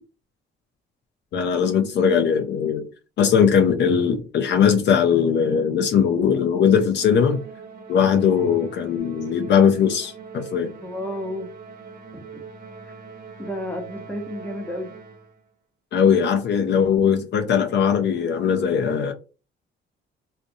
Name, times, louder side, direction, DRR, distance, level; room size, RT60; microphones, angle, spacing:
voice 1, 1.3-2.9 3.2-7.4 7.9-10.7 15.9-19.1, left 7 dB, 60° left, 0.4 m, -20 dB
Musical instrument, 7.0-15.4, right 5 dB, 45° right, 0.8 m, -42 dB
voice 2, 10.8-11.5 12.1-12.2 12.8-12.9 13.4-14.9, left 1 dB, 10° left, 0.9 m, -31 dB
2.5 x 2.1 x 2.7 m
cardioid pair, 90°, 20 cm